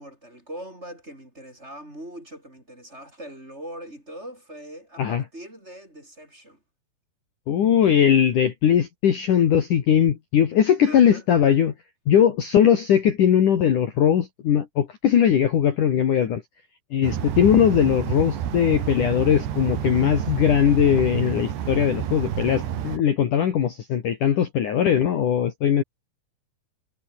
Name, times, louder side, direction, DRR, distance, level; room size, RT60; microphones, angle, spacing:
voice 1, 0.0-6.6 10.8-11.2, right 1 dB, 15° right, 6.8 m, -41 dB
voice 2, 7.5-11.7 12.1-16.4 16.9-25.8, left 9 dB, 55° left, 3.1 m, -20 dB
sound 1, 17.0-23.0, right 10 dB, 75° right, 4.5 m, -29 dB
omnidirectional pair, 5.1 m